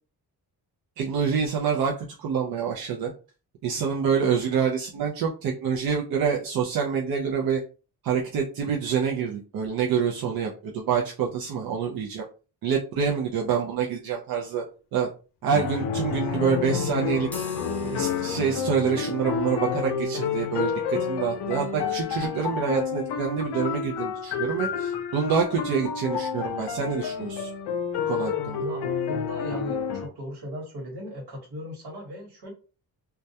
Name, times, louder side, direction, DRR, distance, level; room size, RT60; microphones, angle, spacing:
voice 1, 1.0-1.9 2.2-3.1 3.6-7.6 8.0-12.2 12.6-14.6 14.9-15.1 15.4-17.3 17.8-27.5 28.1-28.6, right 6 dB, 60° right, 0 dB, 0.5 m, -26 dB
sound 1, 15.5-30.1, left 6 dB, 85° left, 0.5 m, -29 dB
sound 2, 17.2-25.0, left 2 dB, 5° left, 0.4 m, -49 dB
voice 2, 28.5-32.5, left 1 dB, 80° right, 0 dB, 1.2 m, -37 dB
2.2 x 2.1 x 2.7 m, 0.35 s
wide cardioid pair, 150°, 39 cm